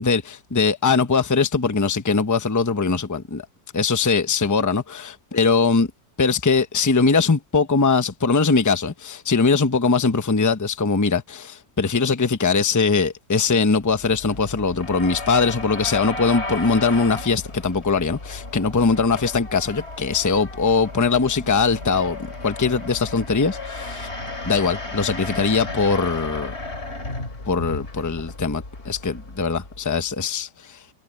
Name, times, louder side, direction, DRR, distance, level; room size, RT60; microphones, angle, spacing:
voice 1, 0.0-3.4 3.7-5.0 5.3-5.9 6.2-22.2 22.4-24.1 24.4-26.5 27.4-30.8, left 4 dB, 20° left, 0.5 m, -21 dB
sound 1, 13.8-30.1, left 2 dB, 35° left, 3.5 m, -34 dB
omnidirectional pair, 2.0 m